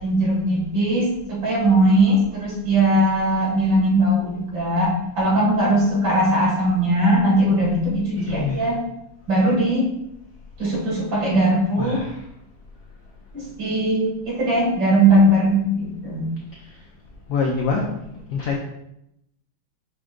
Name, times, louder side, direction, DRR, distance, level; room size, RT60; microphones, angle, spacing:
voice 1, 0.0-8.8 9.3-9.8 10.6-12.0 13.3-16.3, right 1 dB, 55° right, -4 dB, 2.1 m, -19 dB
voice 2, 8.1-8.6 11.8-12.2 17.3-18.6, left 4 dB, 80° left, 0 dB, 0.9 m, -25 dB
5.9 x 2.5 x 3.6 m, 0.81 s
omnidirectional pair, 2.3 m